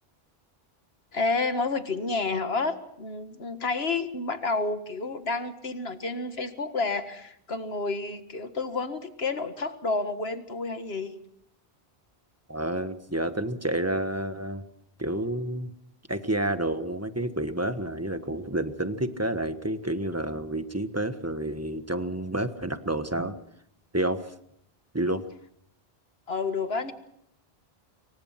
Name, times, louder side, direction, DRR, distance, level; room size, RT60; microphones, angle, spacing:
voice 1, 1.1-11.1 26.3-26.9, left 3 dB, 75° left, 9 dB, 2.0 m, -30 dB
voice 2, 12.5-14.6 15.0-15.7 16.1-23.3 23.9-24.3 24.9-25.2, right 1 dB, 15° right, 9 dB, 1.4 m, -29 dB
26.5 x 23.5 x 5.9 m, 0.73 s
omnidirectional pair, 1.0 m